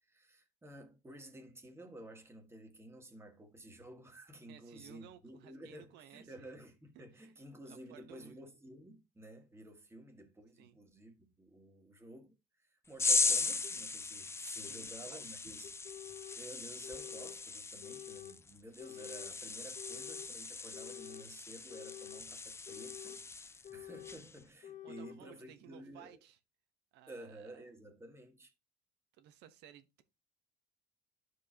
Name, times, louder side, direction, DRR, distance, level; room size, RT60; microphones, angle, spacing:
voice 1, 0.0-15.7 16.4-26.2 27.1-28.5, right 1 dB, 15° right, 1.7 m, -53 dB
voice 2, 4.5-6.5 6.9-7.3 7.7-8.4 10.6-10.8 14.7-15.3 24.8-26.4 26.9-27.6 29.1-30.0, right 10 dB, 90° right, 1.0 m, -58 dB
sound 1, 13.0-23.7 24.0-24.4, left 4 dB, 15° left, 0.4 m, -38 dB
sound 2, 13.6-13.7 14.6-14.7 15.6-16.4 16.8-17.4 17.8-18.4 18.8-19.3 19.8-20.3 20.7-21.3 21.7-22.3 22.7-23.2 23.6-24.2 24.6-25.2, left 12 dB, 50° left, 1.1 m, -49 dB
12.0 x 4.8 x 2.8 m
cardioid pair, 110°, 17 cm